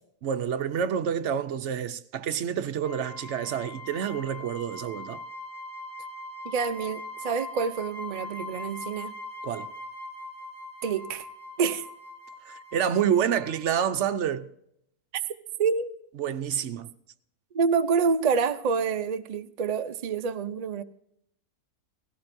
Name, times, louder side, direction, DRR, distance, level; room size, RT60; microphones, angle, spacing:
voice 1, 0.2-5.2 9.4-9.7 12.4-14.5 16.2-16.9, right 8 dB, 60° right, 0.9 m, -28 dB
sound 1, 2.8-14.3, left 2 dB, 5° right, 3.0 m, -41 dB
voice 2, 6.4-9.1 10.8-11.3 11.6-11.8 15.6-15.9 17.5-20.8, right 5 dB, 85° right, 0.3 m, -27 dB
17.0 x 16.5 x 2.6 m
omnidirectional pair, 1.6 m